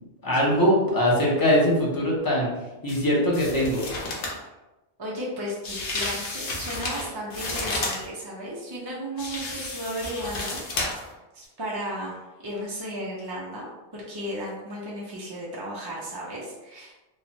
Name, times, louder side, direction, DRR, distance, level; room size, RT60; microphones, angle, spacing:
voice 1, 0.2-2.5 2.8-3.8, equal, 25° left, -5 dB, 0.5 m, -21 dB
sound 1, 2.9-3.0 3.3-4.4 5.6-8.1 9.2-11.1 11.4-11.5, left 2 dB, 65° left, 0.8 m, -32 dB
voice 2, 5.0-10.6 11.3-13.7 13.9-16.9, equal, 35° right, -5 dB, 0.4 m, -34 dB
3.0 x 2.1 x 2.8 m, 1.1 s
omnidirectional pair, 1.1 m